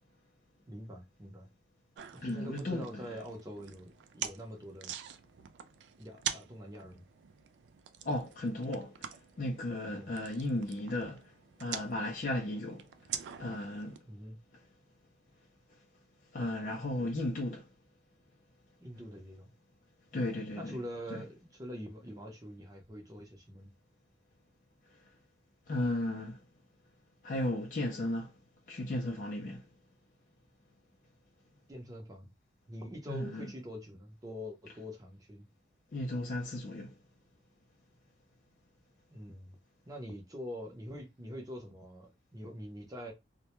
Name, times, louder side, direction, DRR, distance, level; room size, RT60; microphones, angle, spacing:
voice 1, 0.7-1.5 2.1-4.9 6.0-7.1 9.9-10.1 14.0-14.4 18.8-19.5 20.5-23.7 31.7-32.3 32.7-35.5 39.1-39.6 39.9-43.1, equal, 20° right, 0.6 m, -45 dB
sound 1, 1.9-14.0, right 9 dB, 75° right, 0.3 m, -45 dB
voice 2, 2.2-3.2 8.0-11.3 11.6-12.9 13.4-14.0 16.3-17.7 20.1-20.8 21.1-21.2 25.7-26.4 27.2-28.3 28.7-29.6 33.1-33.5 35.9-36.9, left 1 dB, 45° left, 0.4 m, -35 dB
2.1 x 2.1 x 2.9 m
head